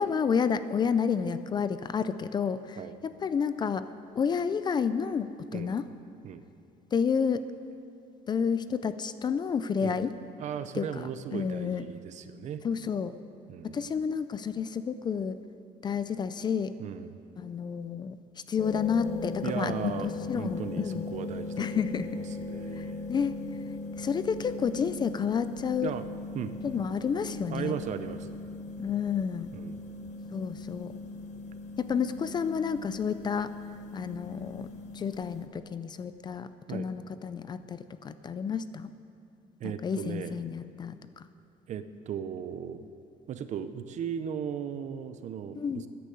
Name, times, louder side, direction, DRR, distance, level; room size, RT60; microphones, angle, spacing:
voice 1, 0.0-2.8 3.2-3.9 4.2-5.8 6.9-7.5 8.3-10.1 10.7-11.8 12.6-13.1 13.6-15.4 15.8-16.7 17.4-18.2 18.5-21.0 21.6-22.1 22.8-23.4 24.0-25.9 26.6-27.8 28.8-29.5 30.3-30.9 31.8-33.5 33.9-34.7 34.9-38.9 39.6-41.0 45.6-45.9, left 6 dB, 30° left, 13 dB, 0.4 m, -30 dB
voice 2, 10.4-12.6 13.5-13.9 16.8-17.1 19.4-23.1 25.8-26.1 26.3-26.5 27.5-28.4 29.5-29.8 36.7-36.9 39.6-40.3 41.7-42.9 43.3-45.9, right 8 dB, 55° right, 11 dB, 0.8 m, -37 dB
sound 1, 18.6-35.5, left 3 dB, 50° left, 1.0 m, -39 dB
14.0 x 10.0 x 7.8 m, 2.5 s
cardioid pair, 160°, 15 cm